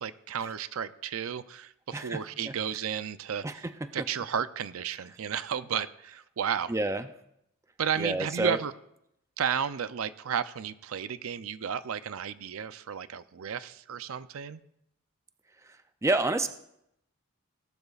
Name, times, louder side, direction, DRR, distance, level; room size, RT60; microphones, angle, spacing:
voice 1, 0.0-3.7 3.9-6.7 7.8-8.7 9.4-14.6, right 8 dB, 70° right, 14 dB, 0.5 m, -33 dB
voice 2, 1.9-2.5 3.4-4.1 6.7-7.1 8.0-8.6 15.6-16.5, right 2 dB, 15° right, 9 dB, 0.4 m, -30 dB
18.0 x 12.0 x 2.4 m, 0.78 s
head